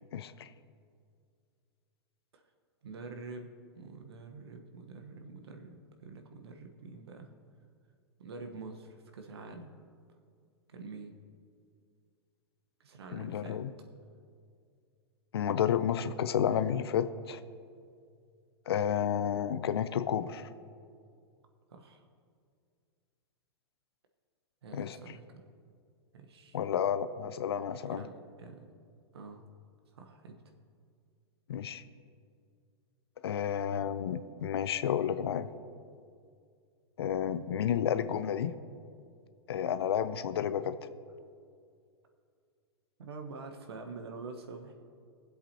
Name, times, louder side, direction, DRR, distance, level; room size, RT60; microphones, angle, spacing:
voice 1, 0.1-0.5 13.1-13.7 15.3-17.4 18.7-20.5 24.7-25.0 26.5-28.1 31.5-31.8 33.2-35.5 37.0-38.5 39.5-40.8, left 9 dB, 70° left, 13 dB, 0.5 m, -31 dB
voice 2, 2.8-7.3 8.2-9.7 10.7-11.2 12.8-13.6 21.7-22.1 24.6-25.4 26.1-26.6 27.9-28.7 29.1-29.5 29.9-30.4 43.0-44.7, right 3 dB, 75° right, 4 dB, 1.2 m, -46 dB
21.5 x 7.9 x 2.9 m, 2.3 s
hypercardioid pair, 105°, 14 cm